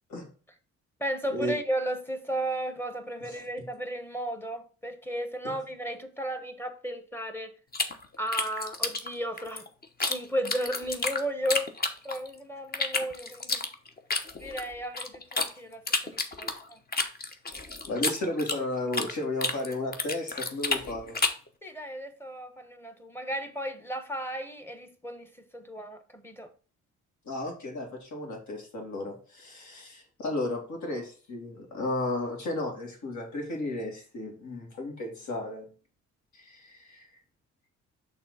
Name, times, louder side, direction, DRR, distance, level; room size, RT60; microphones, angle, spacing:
voice 1, 1.0-7.5 8.2-9.6 10.0-11.7 12.0-13.7 14.4-16.8 21.6-26.5, right 1 dB, 5° left, 1.1 m, -34 dB
sound 1, 7.7-10.2 10.5-12.3 12.7-15.5 15.9-19.1 19.4-21.5, left 3 dB, 30° left, 1.0 m, -30 dB
voice 2, 17.9-21.2 27.3-35.7 36.3-37.1, left 1 dB, 70° left, 2.5 m, -34 dB
5.9 x 3.5 x 5.5 m
cardioid pair, 90°, 30 cm